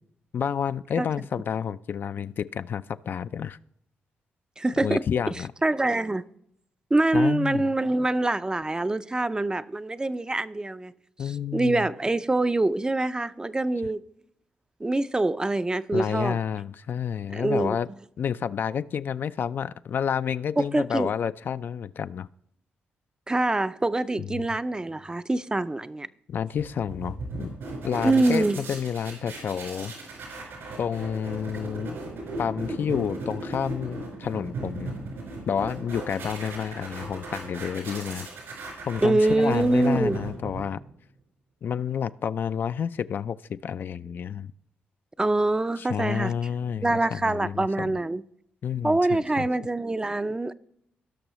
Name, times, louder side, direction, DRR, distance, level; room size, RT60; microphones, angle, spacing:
voice 1, 0.3-3.6 4.8-5.5 7.1-7.7 11.2-11.9 15.9-17.9 18.2-22.3 24.2-24.3 26.3-27.5 27.8-29.9 30.8-32.0 32.4-34.9 35.5-38.3 38.9-40.8 41.6-44.5 45.8-47.9 48.6-49.5, left 8 dB, 55° left, 0.3 m, -30 dB
voice 2, 4.6-5.0 5.6-6.2 6.9-10.9 11.5-14.0 14.8-16.4 17.3-17.8 20.6-21.1 23.3-26.1 28.0-28.6 39.0-40.2 45.2-46.3 46.8-48.2 48.8-50.5, right 2 dB, 20° right, 0.4 m, -24 dB
sound 1, 26.6-40.9, right 2 dB, 80° right, 4.5 m, -37 dB
18.0 x 6.1 x 3.0 m
supercardioid pair, 60°, 4 cm